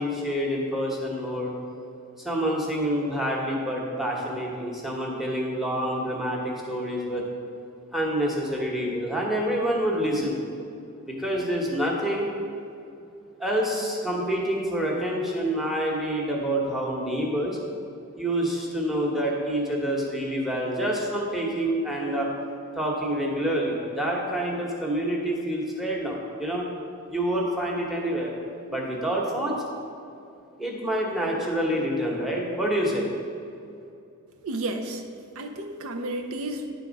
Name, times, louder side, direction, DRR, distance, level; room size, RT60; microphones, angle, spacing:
voice 1, 0.0-1.5 2.2-7.2 7.9-10.4 11.0-12.3 13.4-17.6 18.2-22.3 22.8-26.7 27.1-28.3 28.7-29.6 30.6-33.1, equal, ahead, -2 dB, 1.0 m, -27 dB
voice 2, 34.4-35.0 35.4-36.7, right 1 dB, 80° right, 5 dB, 0.6 m, -32 dB
10.0 x 3.5 x 5.1 m, 2.6 s
head